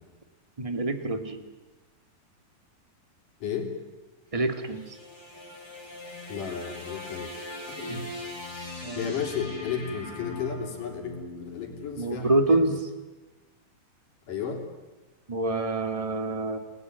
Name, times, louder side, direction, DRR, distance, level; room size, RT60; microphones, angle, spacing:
voice 1, 0.6-1.4 4.3-5.0 7.9-8.0 8.8-9.1 12.0-12.8 15.3-16.6, right 2 dB, 15° right, 7 dB, 1.4 m, -26 dB
voice 2, 3.4-3.7 6.3-7.3 7.8-8.1 8.9-12.6 14.3-14.6, left 6 dB, 65° left, 2 dB, 5.1 m, -33 dB
sound 1, 4.3-12.6, left 2 dB, 5° left, 7.2 m, -41 dB
29.5 x 19.5 x 9.6 m, 1.2 s
omnidirectional pair, 4.0 m